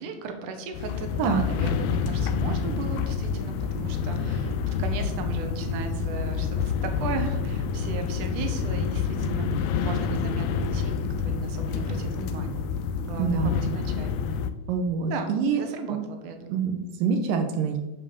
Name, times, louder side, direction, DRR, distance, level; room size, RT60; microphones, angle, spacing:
voice 1, 0.0-12.7 13.0-14.2 15.1-16.6, right 5 dB, 65° right, 6 dB, 2.1 m, -36 dB
sound 1, 0.7-14.5, left 6 dB, 85° left, 2.3 m, -28 dB
voice 2, 13.2-13.5 14.7-15.6 15.9-16.0 16.5-17.8, right 6 dB, 85° right, 5 dB, 1.9 m, -25 dB
11.5 x 5.6 x 7.0 m, 1.0 s
omnidirectional pair, 5.3 m